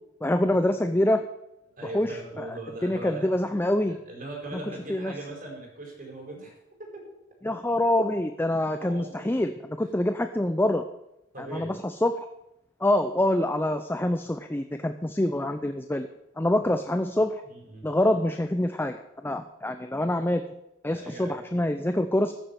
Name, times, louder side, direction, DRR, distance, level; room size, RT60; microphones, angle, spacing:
voice 1, 0.2-1.3 1.9-4.0 4.9-5.1 7.4-9.5 9.8-10.8 11.4-12.3 12.8-16.1 16.4-17.4 17.8-20.4 20.8-22.3, left 1 dB, 10° left, 8 dB, 0.6 m, -26 dB
voice 2, 1.8-3.3 3.9-6.5 6.8-7.0 8.8-9.3 9.8-9.9 11.3-11.7 16.6-16.7 17.4-17.9 20.9-21.4, right 2 dB, 45° right, 0 dB, 4.8 m, -40 dB
14.5 x 7.4 x 7.0 m, 0.86 s
head